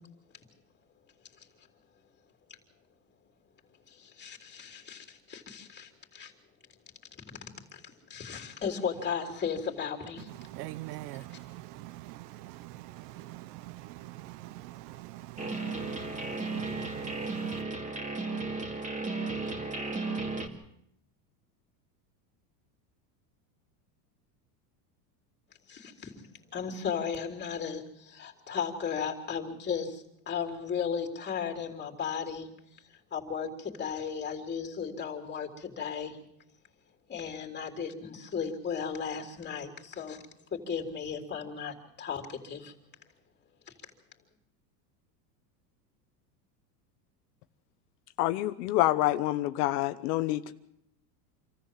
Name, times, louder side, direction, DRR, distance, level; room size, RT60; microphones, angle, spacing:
voice 1, 3.9-6.3 7.7-10.3 11.1-11.4 25.7-26.1 26.5-32.5 33.1-36.2 37.1-40.3 40.5-42.7, left 6 dB, 20° left, 3.4 m, -35 dB
voice 2, 10.3-17.6, right 17 dB, 70° right, 0.8 m, -44 dB
sound 1, 15.4-20.5, right 3 dB, 15° right, 2.3 m, -34 dB
voice 3, 48.2-50.5, left 15 dB, 70° left, 1.1 m, -27 dB
26.5 x 14.0 x 7.5 m
supercardioid pair, 120°, 49 cm